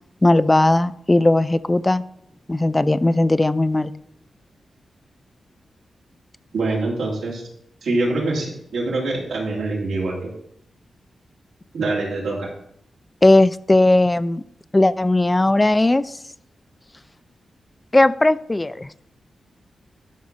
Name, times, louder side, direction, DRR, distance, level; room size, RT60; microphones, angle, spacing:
voice 1, 0.2-2.0 2.5-3.9 13.2-14.4 14.7-16.2 17.9-18.9, left 2 dB, 25° left, 15 dB, 0.4 m, -17 dB
voice 2, 6.5-7.4 7.8-10.3 11.7-12.5, right 2 dB, 90° right, -4 dB, 2.8 m, -24 dB
11.5 x 5.2 x 4.1 m, 0.72 s
cardioid pair, 45°, 0 cm